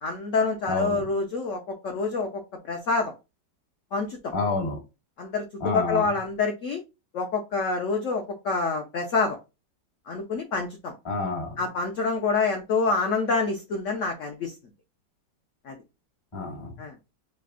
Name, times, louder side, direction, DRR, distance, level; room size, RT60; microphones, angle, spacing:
voice 1, 0.0-2.4 2.7-3.1 3.9-4.3 5.2-5.4 5.7-6.8 7.1-9.4 10.1-10.9 11.6-14.5 15.7-15.8 16.8-16.9, left 4 dB, 70° left, 0.8 m, -27 dB
voice 2, 0.7-1.0 4.3-4.8 5.6-6.1 11.0-11.6 16.3-16.8, left 3 dB, 25° left, 0.7 m, -28 dB
3.4 x 3.1 x 3.6 m
omnidirectional pair, 1.9 m